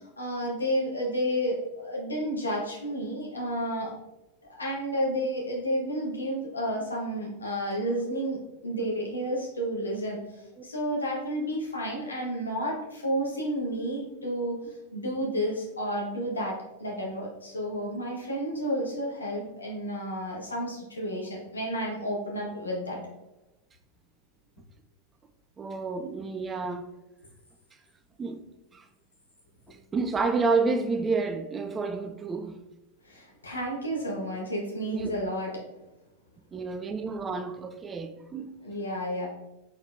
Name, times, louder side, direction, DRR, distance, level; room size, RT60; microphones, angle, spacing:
voice 1, 0.2-3.9 4.6-14.6 14.9-23.0 33.0-35.6 38.6-39.3, equal, 75° left, 1.3 m, -31 dB
voice 2, 25.6-26.9 28.2-28.4 28.7-28.8 29.7-32.6 34.9-35.1 36.5-38.5, right 4 dB, 20° right, 0.4 m, -29 dB
4.3 x 4.1 x 2.6 m
figure-of-eight pair, 90°, 0 cm